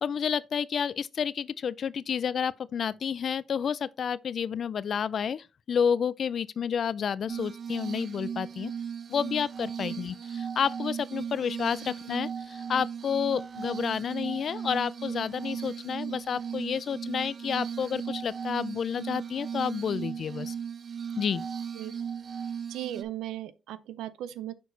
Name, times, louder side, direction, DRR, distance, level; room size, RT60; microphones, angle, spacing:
voice 1, 0.0-8.7 9.1-20.5 21.2-21.4, left 7 dB, 55° left, 0.4 m, -30 dB
Glass, 7.3-23.0, right 7 dB, 45° right, 0.7 m, -37 dB
voice 2, 22.7-24.5, right 13 dB, 90° right, 0.6 m, -37 dB
6.2 x 4.6 x 4.0 m
cardioid pair, 90°, 0 cm